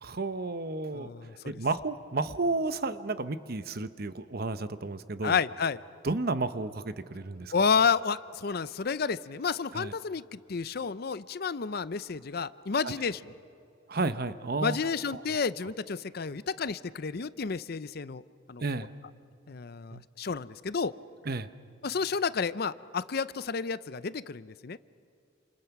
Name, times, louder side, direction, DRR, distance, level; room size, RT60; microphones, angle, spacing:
voice 1, 0.0-1.1 1.4-5.4 6.0-7.5 9.7-9.9 12.8-12.9 13.9-14.8 15.1-15.4 18.6-18.9 19.9-20.0 21.3-21.5, right 3 dB, 50° right, 12 dB, 0.9 m, -32 dB
voice 2, 0.9-1.5 5.2-5.8 7.5-13.3 14.6-18.2 18.5-18.6 19.5-20.9 21.8-24.8, left 5 dB, 55° left, 16 dB, 0.6 m, -30 dB
28.5 x 27.5 x 6.0 m, 2.6 s
head